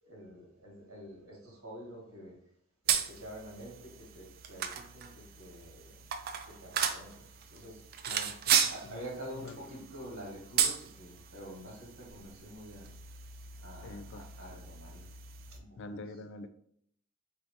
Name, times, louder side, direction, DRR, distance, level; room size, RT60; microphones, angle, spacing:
voice 1, 0.0-2.4 2.8-6.0 6.4-7.2 7.5-7.8 8.6-12.9 13.6-15.1 15.5-16.0, right 1 dB, 85° right, -3 dB, 1.7 m, -47 dB
sound 1, 2.9-15.6, right 8 dB, 45° right, 0.4 m, -35 dB
voice 2, 8.1-8.6 8.8-9.0 9.3-9.6 13.8-14.3 15.8-16.5, left 2 dB, 60° left, 10 dB, 0.4 m, -45 dB
4.0 x 3.4 x 2.8 m, 0.68 s
head